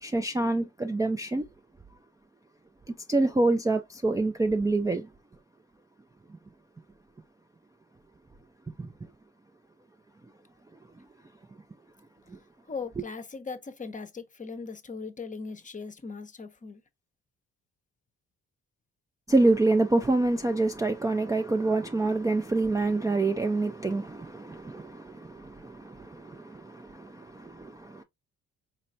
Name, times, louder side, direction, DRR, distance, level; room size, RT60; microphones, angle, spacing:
voice 1, 0.0-1.4 3.1-5.1 8.8-8.9 13.0-13.1 19.3-28.0, right 2 dB, 10° right, 0.4 m, -26 dB
voice 2, 12.7-16.8, left 4 dB, 25° left, 0.7 m, -39 dB
4.4 x 3.1 x 2.6 m
cardioid pair, 90°, 30 cm